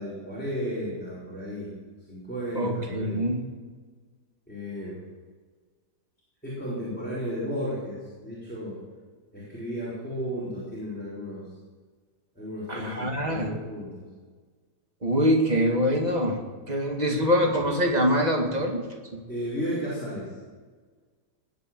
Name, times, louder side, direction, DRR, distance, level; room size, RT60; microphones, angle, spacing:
voice 1, 0.0-1.7 2.1-3.2 4.5-5.0 6.4-8.8 9.3-11.5 12.3-14.0 19.3-20.3, equal, 5° left, -9 dB, 4.9 m, -34 dB
voice 2, 2.5-3.4 12.7-13.5 15.0-16.4 16.7-18.9 19.1-19.2, equal, 25° right, 2 dB, 2.0 m, -24 dB
19.0 x 8.1 x 7.6 m, 1.5 s
omnidirectional pair, 1.9 m